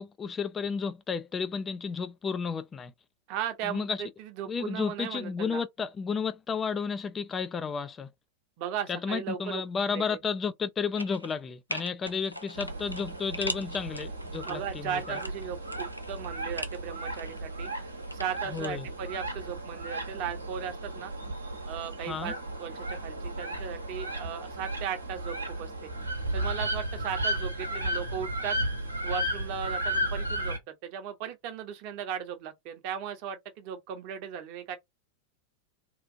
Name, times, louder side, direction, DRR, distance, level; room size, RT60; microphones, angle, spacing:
voice 1, 0.0-2.9 3.6-4.0 4.5-8.1 8.9-15.2 18.5-18.9 22.0-22.3, left 5 dB, 20° left, 0.3 m, -32 dB
voice 2, 3.3-5.6 8.6-9.6 9.9-10.2 14.4-17.7 18.1-21.1 21.7-25.9 26.3-28.6 29.0-34.8, right 8 dB, 45° right, 0.8 m, -37 dB
sound 1, 11.0-11.4 11.7-14.5 15.0-16.8 17.1-18.7 19.0-19.1, equal, 90° left, 0.4 m, -40 dB
sound 2, 12.5-30.6, right 1 dB, 80° right, 0.8 m, -34 dB
2.8 x 2.4 x 2.6 m
figure-of-eight pair, 90°, 0 cm